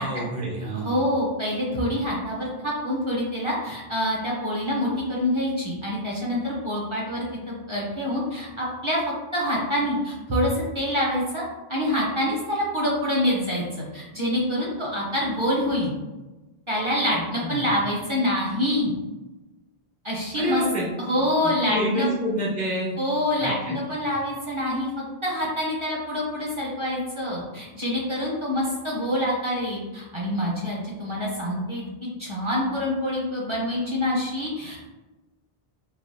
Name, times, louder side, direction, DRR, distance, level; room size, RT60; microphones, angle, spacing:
voice 1, 0.0-1.0 17.1-17.6 20.3-20.9 21.6-23.0 23.4-23.7, right 1 dB, 10° left, -5 dB, 0.4 m, -28 dB
voice 2, 0.7-9.0 9.3-11.4 11.7-16.0 16.7-18.9 20.0-20.6 21.0-22.1 23.0-24.9 25.2-34.9, left 1 dB, 35° right, -4 dB, 0.6 m, -26 dB
3.2 x 2.2 x 2.6 m, 1.1 s
omnidirectional pair, 1.0 m